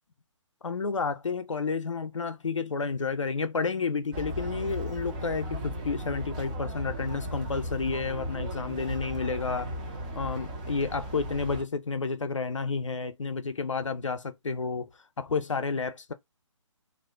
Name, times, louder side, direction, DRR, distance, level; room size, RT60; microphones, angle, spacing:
voice 1, 0.6-9.7 10.1-14.9 15.2-16.1, left 4 dB, 70° left, 0.5 m, -31 dB
sound 1, 4.1-11.6, right 1 dB, 15° right, 0.4 m, -36 dB
2.5 x 2.1 x 3.4 m
figure-of-eight pair, 140°, 17 cm